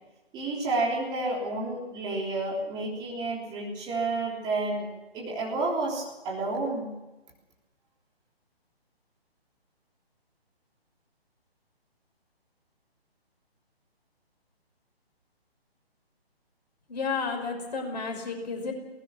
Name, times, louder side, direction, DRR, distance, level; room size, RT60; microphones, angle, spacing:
voice 1, 0.3-4.9 5.1-6.9, right 2 dB, 15° right, -3 dB, 3.6 m, -30 dB
voice 2, 16.9-18.7, left 4 dB, 40° left, 2 dB, 5.8 m, -32 dB
22.0 x 19.0 x 7.4 m, 1.1 s
figure-of-eight pair, 140°, 31 cm